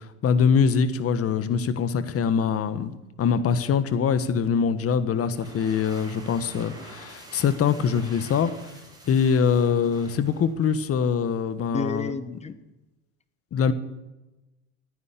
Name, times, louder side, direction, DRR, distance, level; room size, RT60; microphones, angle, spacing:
voice 1, 0.0-2.9 3.2-8.5 9.1-12.2 13.5-13.7, left 6 dB, 30° left, 13 dB, 1.4 m, -23 dB
sound 1, 5.2-10.9, right 1 dB, 10° right, 5.0 m, -47 dB
voice 2, 11.7-12.6, left 4 dB, 15° left, 14 dB, 1.1 m, -31 dB
15.0 x 9.7 x 8.4 m, 1.0 s
hypercardioid pair, 100°, 43 cm